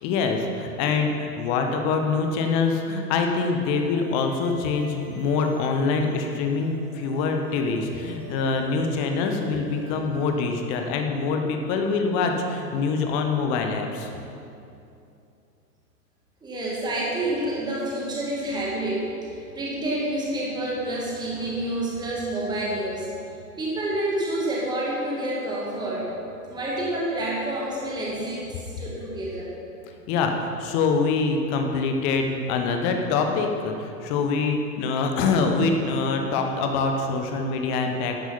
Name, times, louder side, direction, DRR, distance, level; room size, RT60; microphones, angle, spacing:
voice 1, 0.0-14.1 30.1-38.1, left 4 dB, 15° left, 4 dB, 0.5 m, -25 dB
sound 1, 3.9-10.3, left 1 dB, 30° right, 1.6 m, -47 dB
voice 2, 16.4-23.1 23.6-26.1 26.5-29.5, right 1 dB, 10° right, -5 dB, 1.9 m, -28 dB
10.5 x 10.5 x 5.7 m, 2.6 s
figure-of-eight pair, 110°, 48 cm